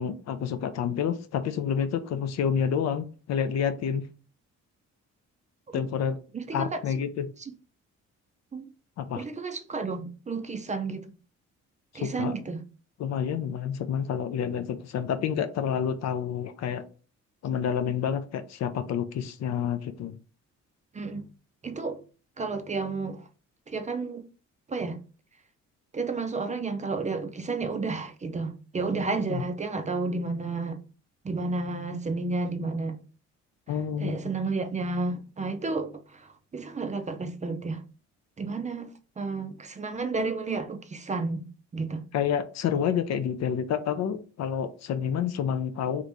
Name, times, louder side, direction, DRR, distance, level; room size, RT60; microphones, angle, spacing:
voice 1, 0.0-4.1 5.7-6.2 6.5-7.3 9.0-9.2 11.9-12.3 13.0-16.8 17.4-20.2 29.3-29.4 33.7-34.2 42.1-46.0, left 8 dB, 60° left, 0.5 m, -29 dB
voice 2, 6.3-6.8 8.5-8.7 9.2-11.1 11.9-12.6 20.9-21.3 21.6-22.0 22.4-23.2 23.7-24.3 24.7-25.0 25.9-30.8 31.2-33.0 34.0-37.8 38.4-41.5 41.7-42.1, right 3 dB, 25° right, 0.4 m, -31 dB
2.9 x 2.5 x 3.4 m
cardioid pair, 90°, 30 cm